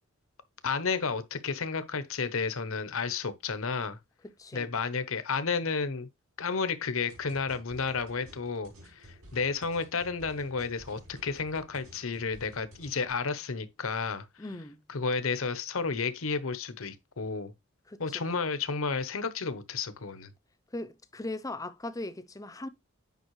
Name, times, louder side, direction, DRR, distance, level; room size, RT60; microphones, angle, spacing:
voice 1, 0.6-4.0 4.5-6.1 6.4-14.3 14.9-17.5 18.0-20.3, left 5 dB, 75° left, 0.9 m, -32 dB
sound 1, 7.1-13.1, equal, 80° right, 6.0 m, -53 dB
voice 2, 14.4-14.8 17.9-18.0 20.7-22.7, left 2 dB, 15° left, 0.5 m, -38 dB
9.3 x 5.4 x 3.1 m
head